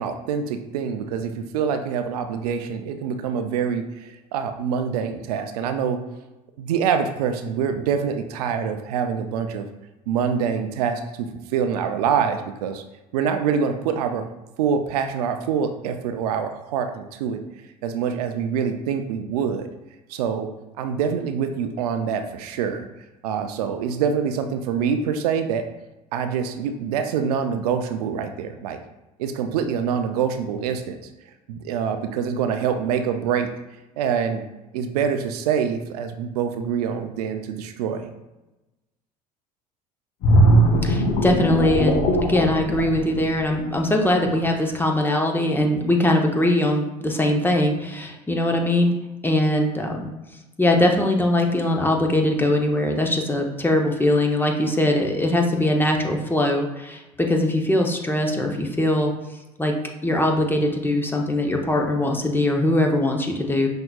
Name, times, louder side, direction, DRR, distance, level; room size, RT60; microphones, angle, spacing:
voice 1, 0.0-6.0 6.6-9.7 10.1-12.8 13.1-14.3 14.6-17.4 17.8-19.7 20.1-20.5 20.8-22.9 23.2-25.6 26.1-28.8 29.2-31.0 31.5-33.5 34.0-34.5 34.7-38.1, right 7 dB, 80° right, 7 dB, 0.4 m, -25 dB
sound 1, 40.2-43.8 44.2-44.5, right 1 dB, 50° left, 0.8 m, -19 dB
voice 2, 40.8-48.9 49.2-50.1 50.6-59.1 59.6-59.7 60.0-63.7, left 1 dB, 10° left, 2 dB, 0.7 m, -21 dB
5.7 x 2.7 x 2.3 m, 1.0 s
hypercardioid pair, 75°, 20 cm